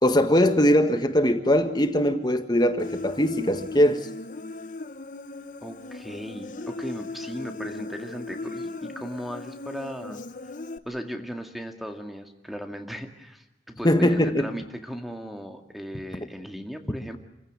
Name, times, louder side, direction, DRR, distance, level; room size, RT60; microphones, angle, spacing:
voice 1, 0.0-4.0 13.8-14.5, equal, 25° left, 8 dB, 1.6 m, -21 dB
Human voice, 2.8-10.8, left 2 dB, 45° left, 1.0 m, -38 dB
voice 2, 5.6-10.2 10.9-17.2, equal, ahead, 5 dB, 2.1 m, -37 dB
28.0 x 16.0 x 9.6 m, 0.94 s
head